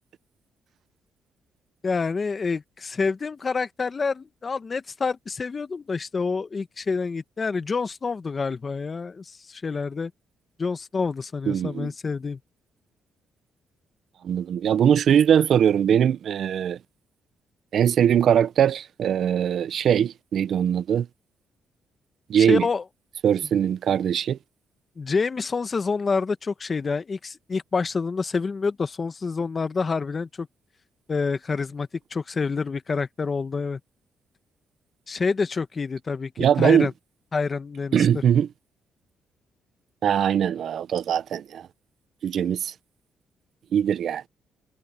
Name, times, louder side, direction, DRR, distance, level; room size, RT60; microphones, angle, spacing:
voice 1, 1.8-10.1 10.6-12.4 22.4-22.8 25.0-30.5 31.1-33.8 35.1-36.9 37.3-38.2, left 4 dB, 35° left, 1.2 m, -27 dB
voice 2, 11.5-11.9 14.2-16.8 17.7-21.1 22.3-22.7 23.2-24.4 36.4-36.9 37.9-38.5 40.0-41.7 42.2-42.7 43.7-44.2, right 9 dB, 65° right, 0.8 m, -21 dB
cardioid pair, 90°, 0 cm